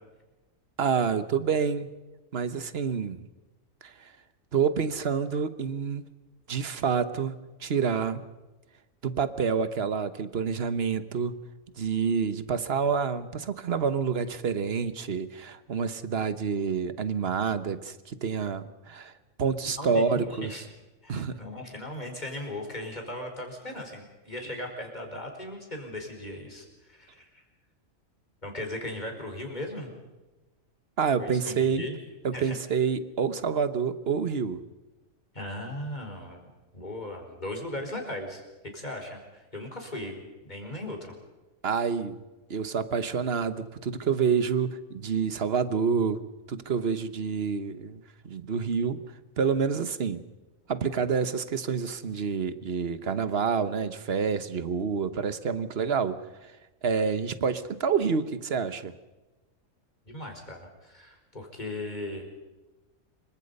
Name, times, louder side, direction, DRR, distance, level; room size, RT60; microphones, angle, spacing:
voice 1, 0.8-1.9 2.3-3.3 3.8-3.9 4.5-6.0 6.5-8.2 9.0-11.3 11.8-19.1 19.4-20.6 21.1-21.4 31.0-31.8 32.2-34.6 41.6-42.2 42.5-46.2 46.5-49.0 49.4-50.2 50.7-56.2 56.8-58.9, right 6 dB, 50° right, 13 dB, 1.3 m, -28 dB
voice 2, 19.8-20.6 21.0-27.4 28.4-29.9 31.2-32.0 32.3-32.6 35.3-36.4 36.7-38.4 38.7-41.1 60.1-62.4, left 1 dB, 35° left, 2 dB, 4.7 m, -38 dB
26.5 x 24.0 x 5.4 m, 1.1 s
omnidirectional pair, 1.4 m